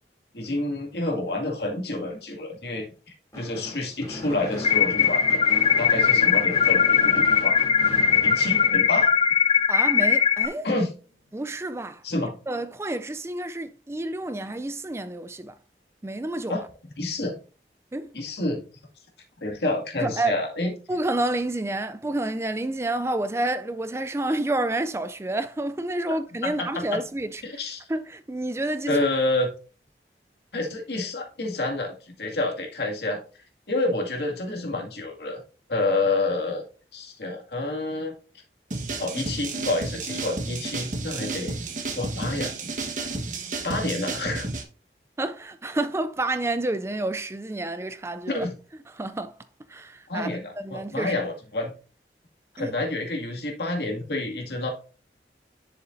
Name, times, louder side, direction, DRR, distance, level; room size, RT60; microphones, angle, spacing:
voice 1, 0.3-2.9 3.4-5.4 5.8-7.6 8.2-9.1 10.6-10.9 12.0-12.3 16.5-16.6 17.0-17.3 18.1-18.6 19.4-20.7 26.4-27.0 27.4-27.8 28.9-29.5 30.5-33.2 33.7-35.4 35.7-36.6 36.9-38.1 39.0-41.5 42.0-42.5 43.6-44.5 48.3-48.5 50.1-51.7 52.6-54.7, left 2 dB, 70° left, 2.2 m, -28 dB
Gunshot gunfire / Fireworks, 3.3-9.6, left 1 dB, 15° left, 4.8 m, -37 dB
sound 1, 4.6-10.5, left 7 dB, 35° left, 0.6 m, -20 dB
voice 2, 9.7-10.7 11.3-12.0 12.5-15.6 16.0-16.5 17.9-18.1 20.0-20.4 20.9-27.4 27.9-29.0 45.2-48.5 48.9-49.3 49.7-50.3 50.6-51.2 52.6-52.7, right 2 dB, 15° right, 0.3 m, -29 dB
sound 2, 38.7-44.6, right 3 dB, 45° right, 1.5 m, -32 dB
10.5 x 6.9 x 2.6 m
head